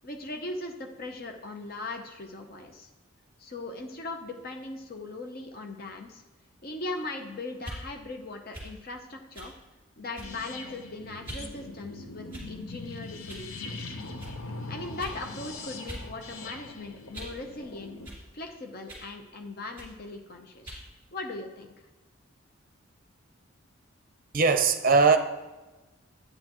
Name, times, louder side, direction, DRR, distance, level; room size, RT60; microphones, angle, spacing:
voice 1, 0.0-2.9 3.4-6.2 6.6-9.5 10.0-13.9 14.7-17.9 18.3-20.8 21.1-21.7, left 2 dB, 45° left, 4 dB, 0.7 m, -39 dB
sound 1, 7.6-7.8 8.5-8.7 9.3-9.5 10.1-10.5 11.2-11.5 12.3-12.7 13.3-13.5 14.2-14.4 15.0-15.2 15.9-16.1 16.4-17.4 18.0-18.2 18.9-19.1 19.8-20.0 20.6-20.9, right 1 dB, 10° right, 2.4 m, -42 dB
sound 2, 10.2-18.1, left 3 dB, 85° left, 0.8 m, -41 dB
voice 2, 24.3-25.2, right 4 dB, 40° right, 7 dB, 0.6 m, -20 dB
11.0 x 8.8 x 3.0 m, 1.1 s
head